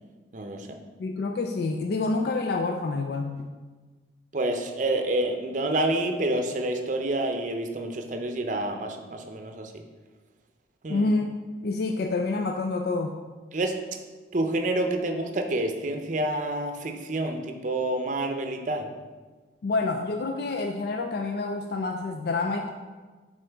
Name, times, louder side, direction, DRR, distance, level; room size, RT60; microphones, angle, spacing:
voice 1, 0.3-0.8 4.3-9.8 10.8-11.1 13.5-13.8 14.3-18.9, right 1 dB, 40° right, 5 dB, 0.6 m, -28 dB
voice 2, 1.0-3.4 10.9-11.3 11.6-13.1 19.6-22.7, left 3 dB, 55° left, 4 dB, 0.3 m, -27 dB
9.2 x 3.8 x 3.4 m, 1.4 s
head